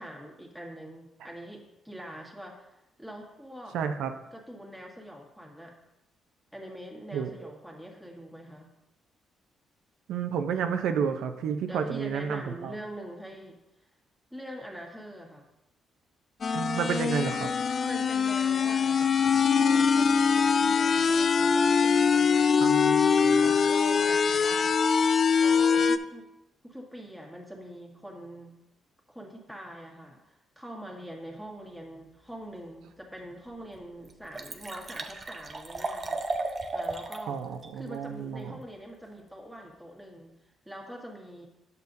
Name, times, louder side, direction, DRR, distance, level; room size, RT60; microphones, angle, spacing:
voice 1, 0.0-3.8 4.3-5.7 6.5-8.7 11.7-13.9 14.3-15.5 17.8-19.1 19.6-22.9 23.3-25.0 25.4-26.3 26.6-28.6 29.1-41.5, equal, ahead, -1 dB, 1.7 m, -44 dB
voice 2, 3.7-4.1 7.1-7.3 10.1-12.7 16.5-17.5 22.6-23.5 37.3-38.5, right 7 dB, 80° right, 7 dB, 0.6 m, -31 dB
sound 1, 16.4-26.0, left 6 dB, 45° left, 0.3 m, -23 dB
Liquid, 33.2-33.3 33.7-33.8 34.0-37.3 37.6-37.7, right 3 dB, 35° right, 0.7 m, -35 dB
9.4 x 6.7 x 2.6 m, 0.91 s
cardioid pair, 90°, 0 cm